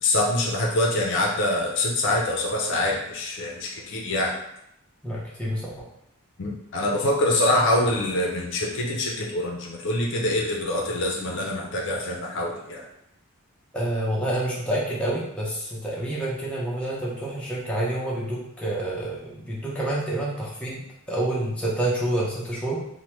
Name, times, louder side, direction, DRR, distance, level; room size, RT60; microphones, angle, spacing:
voice 1, 0.0-4.3 6.4-12.8, left 1 dB, 55° left, -1 dB, 0.5 m, -25 dB
voice 2, 5.0-5.7 13.7-20.8 21.1-22.8, right 1 dB, 5° left, -6 dB, 0.6 m, -28 dB
3.2 x 2.1 x 2.9 m, 0.77 s
head